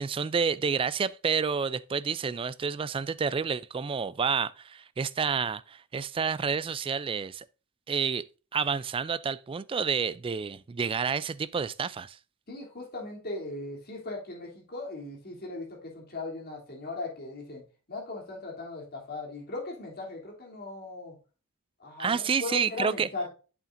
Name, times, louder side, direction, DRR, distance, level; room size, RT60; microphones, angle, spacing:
voice 1, 0.0-7.5 7.9-8.3 8.5-12.2 22.0-23.1, right 6 dB, 25° right, 0.3 m, -29 dB
voice 2, 12.5-17.6 17.9-21.2 21.8-23.3, left 2 dB, 45° left, 3.1 m, -38 dB
8.4 x 7.1 x 2.6 m
head